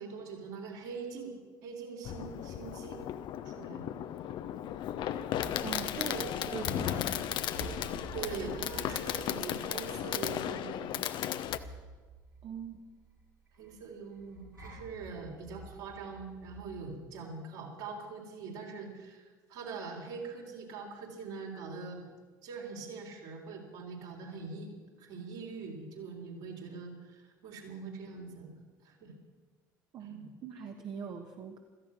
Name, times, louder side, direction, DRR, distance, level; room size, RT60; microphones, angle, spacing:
voice 1, 0.0-1.3 1.6-3.0 3.4-3.9 5.9-6.2 6.5-6.8 8.1-11.1 13.6-22.1 22.4-24.7 25.0-28.5 28.8-29.1 30.0-30.3, right 5 dB, 60° right, 0 dB, 3.7 m, -43 dB
Fireworks, 2.0-11.6, left 11 dB, 50° left, 0.8 m, -35 dB
sound 1, 4.9-16.8, right 2 dB, 90° right, 4.7 m, -50 dB
voice 2, 5.6-7.4 12.4-12.8 29.9-31.6, right 7 dB, 45° right, 4 dB, 1.3 m, -42 dB
16.5 x 14.0 x 6.1 m, 1.4 s
figure-of-eight pair, 60°, 11 cm